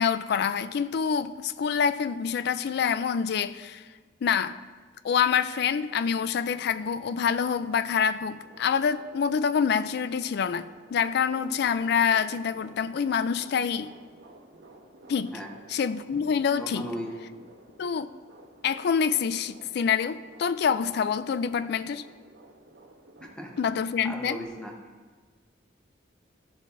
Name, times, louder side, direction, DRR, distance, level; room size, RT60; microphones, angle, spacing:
voice 1, 0.0-3.8 4.2-4.6 5.0-13.9 15.1-15.3 15.7-16.9 17.8-18.1 18.6-22.0 23.6-24.4, left 7 dB, 55° left, 14 dB, 0.3 m, -26 dB
sound 1, 8.3-24.5, right 1 dB, 70° right, 1.6 m, -52 dB
voice 2, 16.6-17.1 23.2-23.6 24.0-24.7, equal, 5° left, 0 dB, 0.9 m, -36 dB
13.5 x 7.3 x 2.6 m, 1.4 s
head